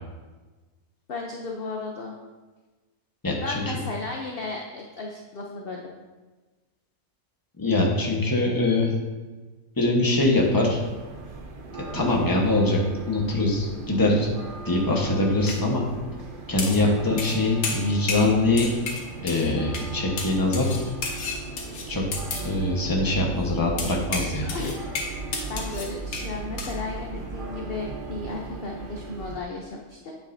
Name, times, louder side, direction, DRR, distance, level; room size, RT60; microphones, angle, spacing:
voice 1, 1.1-2.1 3.4-5.8 16.6-17.0 22.5-22.7 23.3-23.6 24.4-25.2 25.5-30.1, left 3 dB, 50° left, 0 dB, 0.8 m, -35 dB
voice 2, 3.2-3.6 7.6-8.9 9.8-10.8 11.9-12.8 13.1-14.3 14.6-15.8 16.5-18.7 19.2-20.7 21.9-22.0 22.4-24.5, left 2 dB, 15° left, -1 dB, 1.1 m, -23 dB
sound 1, 10.4-29.4, right 4 dB, 45° right, 0.8 m, -37 dB
sound 2, 15.4-15.6 16.6-16.9 17.2-17.4 17.6-18.3 18.6-19.5 19.7-19.9 20.2-22.5 23.8-26.3 26.6-26.7, left 4 dB, 85° left, 1.6 m, -32 dB
8.8 x 8.5 x 2.7 m, 1.3 s
omnidirectional pair, 1.6 m